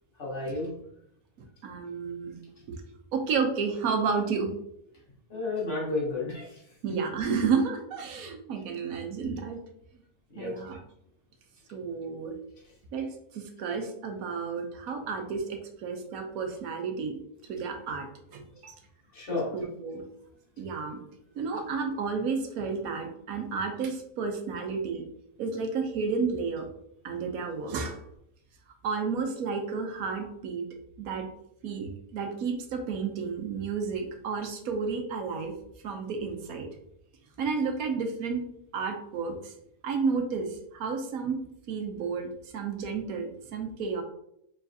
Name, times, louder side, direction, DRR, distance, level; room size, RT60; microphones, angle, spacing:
voice 1, 0.2-0.7 5.3-6.5 10.3-10.5 19.1-19.5, left 2 dB, 55° left, -5 dB, 1.7 m, -31 dB
voice 2, 1.6-2.4 3.1-4.5 6.8-9.6 10.4-10.8 11.7-12.3 12.9-13.1 13.3-17.2 17.5-18.1 18.3-18.7 19.5-20.1 20.6-21.0 21.4-25.0 25.4-26.7 27.0-28.0 28.8-30.6 31.0-31.3 31.6-35.5 35.8-36.7 37.4-38.4 38.7-39.5 39.8-41.4 41.7-42.3 42.5-44.0, right 5 dB, 75° right, 5 dB, 1.1 m, -31 dB
4.6 x 3.2 x 2.6 m, 0.75 s
omnidirectional pair, 1.6 m